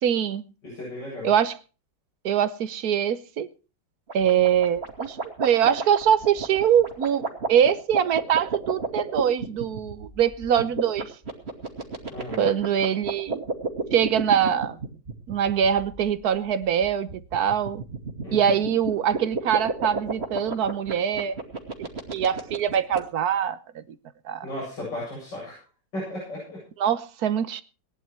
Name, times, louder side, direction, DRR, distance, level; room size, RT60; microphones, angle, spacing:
voice 1, 0.0-0.4 1.2-1.6 2.2-3.5 4.1-11.1 12.4-13.4 13.9-14.8 15.3-17.8 18.3-21.4 22.1-23.8 24.2-24.5 26.8-27.6, right 9 dB, 65° right, 1.4 m, -23 dB
voice 2, 0.6-1.3 12.1-12.5 18.2-18.5 24.4-25.6 25.9-26.6, left 1 dB, 80° left, 8.9 m, -35 dB
sound 1, 4.1-23.0, right 4 dB, 35° right, 2.7 m, -31 dB
19.0 x 10.5 x 4.6 m
omnidirectional pair, 1.9 m